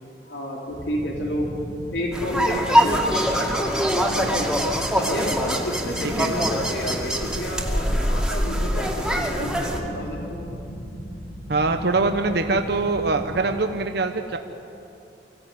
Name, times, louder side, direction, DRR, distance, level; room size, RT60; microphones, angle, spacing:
voice 1, 0.3-1.5 1.9-4.6 4.9-10.4, left 1 dB, 90° left, -1 dB, 3.6 m, -30 dB
sound 1, 0.7-13.5, equal, 70° left, 7.4 m, -37 dB
sound 2, 2.1-9.8, equal, 5° right, 2.2 m, -23 dB
voice 2, 11.5-14.4, right 3 dB, 65° right, 6 dB, 1.0 m, -23 dB
24.5 x 16.0 x 9.3 m, 2.8 s
head